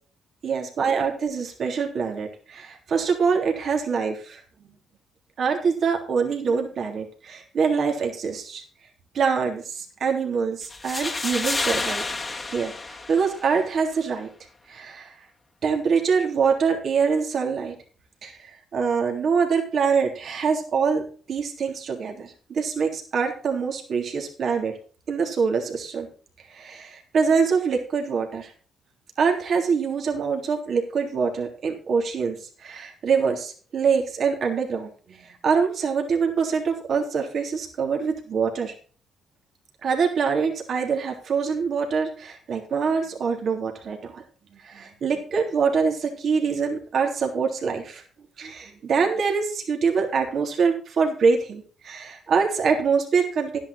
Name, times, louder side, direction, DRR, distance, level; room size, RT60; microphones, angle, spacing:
voice 1, 0.4-4.4 5.4-8.6 9.1-12.0 12.5-14.3 14.7-15.2 15.6-17.7 18.2-21.0 21.3-24.7 25.1-26.1 26.5-28.5 29.2-38.7 39.8-44.2 44.5-48.0 48.4-53.6, right 5 dB, 60° right, 2 dB, 3.3 m, -24 dB
sound 1, 10.6-13.6, left 3 dB, 25° left, 1.8 m, -30 dB
11.5 x 10.5 x 4.2 m, 0.40 s
cardioid pair, 90°, 0 cm